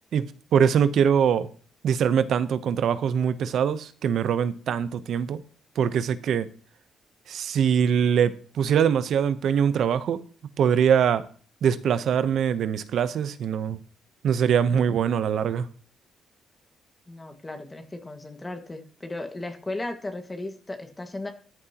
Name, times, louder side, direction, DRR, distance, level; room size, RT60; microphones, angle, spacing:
voice 1, 0.5-1.5 1.8-5.4 5.8-6.5 7.3-10.2 10.6-11.2 11.6-13.8 14.2-15.7, right 8 dB, 70° right, 0.8 m, -23 dB
voice 2, 17.1-21.3, left 2 dB, 20° left, 1.8 m, -36 dB
14.0 x 11.0 x 2.9 m
cardioid pair, 90°, 0 cm